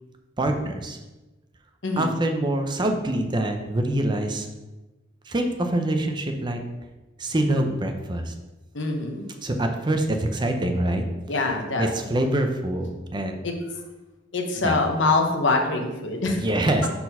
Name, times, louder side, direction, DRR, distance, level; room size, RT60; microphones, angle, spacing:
voice 1, 0.4-1.0 2.0-4.5 5.3-6.6 7.2-8.3 9.4-11.0 11.8-13.4 14.6-14.8 16.3-16.9, right 1 dB, 25° right, 5 dB, 0.5 m, -25 dB
voice 2, 8.7-9.3 11.3-11.9 13.4-13.5 14.3-16.4, left 3 dB, 75° left, 3 dB, 0.9 m, -24 dB
4.4 x 4.2 x 5.4 m, 1.1 s
head